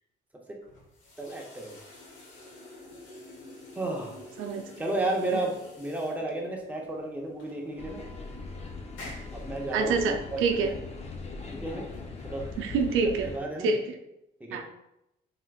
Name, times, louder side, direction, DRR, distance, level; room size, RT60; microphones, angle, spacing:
sound 1, 0.6-13.0, left 1 dB, 75° left, 1.0 m, -50 dB
voice 1, 1.2-1.8 3.8-4.2 4.8-8.0 9.3-10.0 10.3-10.7 11.5-11.9 12.2-12.5 13.2-13.7 14.4-14.6, right 2 dB, 5° right, -1 dB, 0.7 m, -32 dB
voice 2, 4.4-4.7 5.3-5.4 9.7-10.7 12.6-13.3 13.6-14.0 14.5-14.6, right 4 dB, 85° right, 4 dB, 0.4 m, -27 dB
sound 2, 7.8-13.4, left 4 dB, 35° left, 0.5 m, -40 dB
3.3 x 2.9 x 2.3 m, 0.85 s
cardioid pair, 90°, 20 cm